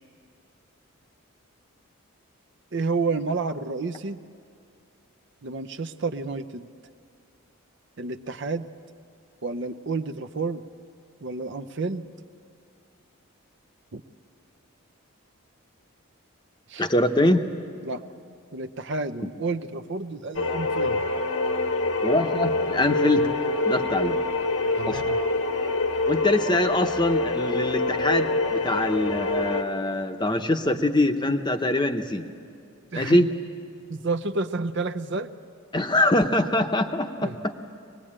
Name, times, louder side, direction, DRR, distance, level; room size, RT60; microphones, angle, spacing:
voice 1, 2.7-4.2 5.4-6.7 8.0-8.7 9.4-10.6 11.2-12.1 13.9-14.0 16.7-16.8 17.8-18.0 18.5-21.0 24.8-25.2 32.9-33.2 33.9-35.3 37.2-37.4, right 3 dB, 55° right, 8 dB, 0.6 m, -30 dB
voice 2, 16.8-17.4 22.0-23.3 23.6-24.2 24.9-25.0 26.1-32.2 33.0-33.3 35.7-37.5, left 1 dB, 20° left, 6 dB, 0.9 m, -23 dB
sound 1, 20.3-29.6, left 2 dB, 75° left, 1.5 m, -26 dB
23.5 x 20.0 x 8.8 m, 2.4 s
head